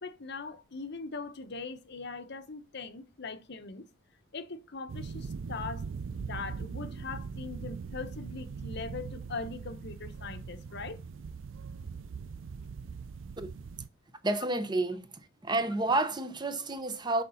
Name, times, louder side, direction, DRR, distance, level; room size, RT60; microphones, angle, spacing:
voice 1, 0.0-3.8 4.3-5.8 6.2-11.0, left 4 dB, 60° left, 0.9 m, -41 dB
sound 1, 4.9-13.9, right 5 dB, 75° right, 0.4 m, -41 dB
voice 2, 14.2-15.1 15.4-17.2, right 2 dB, 20° right, 0.9 m, -30 dB
6.7 x 5.0 x 5.5 m
head